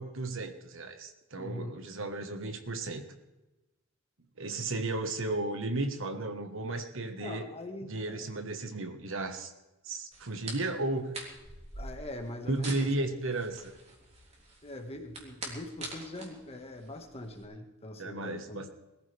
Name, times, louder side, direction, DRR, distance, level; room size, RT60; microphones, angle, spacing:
voice 1, 0.0-3.0 4.4-7.5 7.8-9.5 9.8-11.2 12.5-13.7 18.0-18.7, right 2 dB, 65° right, 7 dB, 1.5 m, -34 dB
voice 2, 1.4-1.8 7.2-8.5 11.7-13.1 14.6-18.6, left 1 dB, 30° left, 4 dB, 1.8 m, -42 dB
sound 1, 10.1-17.4, right 2 dB, 30° right, 3.3 m, -45 dB
21.0 x 14.5 x 3.5 m, 1.0 s
head